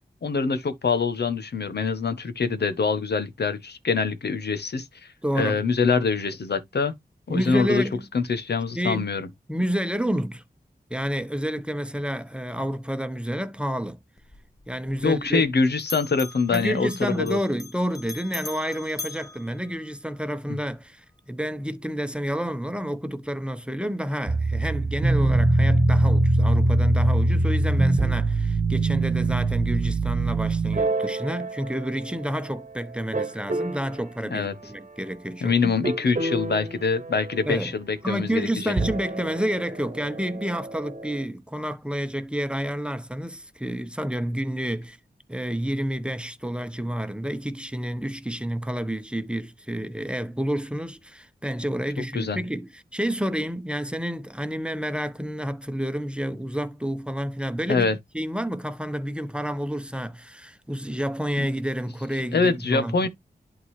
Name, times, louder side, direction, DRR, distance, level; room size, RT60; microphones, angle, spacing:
voice 1, 0.2-4.9 5.3-6.9 7.3-7.8 8.1-9.3 15.0-17.4 20.5-20.6 34.3-34.5 35.4-38.7 52.1-52.4 57.7-58.0 61.4-61.5 62.3-63.1, left 4 dB, 85° left, 1.1 m, -24 dB
voice 2, 5.2-5.6 7.3-8.1 8.7-9.0 9.5-10.4 10.9-14.0 14.7-15.5 16.5-35.7 37.4-37.7 38.0-45.0 45.3-63.1, equal, 5° right, 0.9 m, -29 dB
Bell, 14.2-15.5 15.8-20.3, left 2 dB, 20° left, 0.9 m, -41 dB
sound 1, 24.3-32.6 33.1-34.0 35.8-37.6 38.6-41.2, right 2 dB, 50° right, 1.1 m, -24 dB
11.0 x 3.9 x 3.1 m
wide cardioid pair, 65°, 17 cm